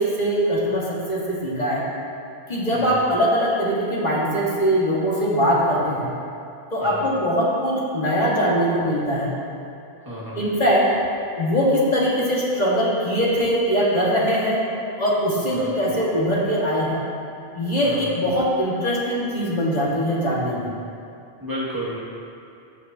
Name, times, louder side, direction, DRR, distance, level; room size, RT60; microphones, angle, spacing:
voice 1, 0.0-1.9 2.5-6.1 6.7-9.3 10.4-10.9 11.4-14.6 15.0-17.0 17.5-20.7, equal, 45° left, -6 dB, 1.9 m, -21 dB
voice 2, 10.0-10.4 15.5-15.7 17.8-18.1 21.4-22.0, equal, 20° right, -7 dB, 1.9 m, -32 dB
15.5 x 6.8 x 2.8 m, 2.6 s
omnidirectional pair, 1.0 m